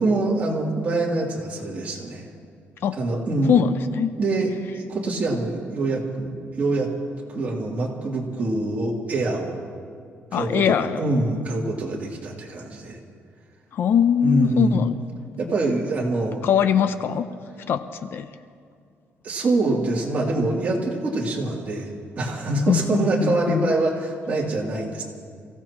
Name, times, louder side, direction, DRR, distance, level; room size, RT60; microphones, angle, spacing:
voice 1, 0.0-2.3 3.0-3.6 4.2-6.9 7.3-9.6 10.3-13.0 14.2-14.8 15.4-16.5 19.2-21.9 22.2-25.0, right 2 dB, 30° right, -4 dB, 3.1 m, -25 dB
voice 2, 3.5-4.2 10.3-11.0 13.7-14.9 16.4-17.3 17.7-18.3 22.7-23.7, left 8 dB, 55° left, 10 dB, 0.6 m, -21 dB
28.0 x 16.5 x 3.0 m, 2.4 s
cardioid pair, 175°, 5 cm